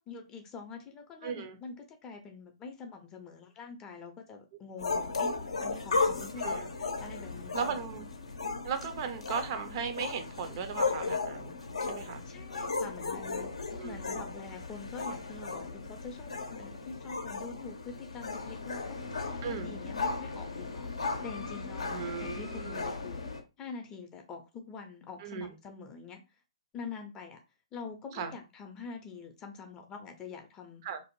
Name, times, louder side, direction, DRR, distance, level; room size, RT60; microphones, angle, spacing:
voice 1, 0.0-5.3 5.6-7.9 12.3-13.5 13.8-20.9 21.2-21.9 22.2-23.2 23.6-26.2 26.7-27.4 27.7-30.8, left 4 dB, 20° left, 0.5 m, -45 dB
voice 2, 1.2-1.6 6.4-6.7 7.5-8.1 8.6-11.5 11.8-12.2 13.8-14.0 19.4-19.7 21.9-22.9 25.2-25.5 28.1-28.4 30.8-31.0, right 6 dB, 40° right, 0.4 m, -37 dB
sound 1, 4.8-23.4, left 3 dB, 70° left, 0.6 m, -36 dB
2.6 x 2.0 x 3.0 m
figure-of-eight pair, 120°, 3 cm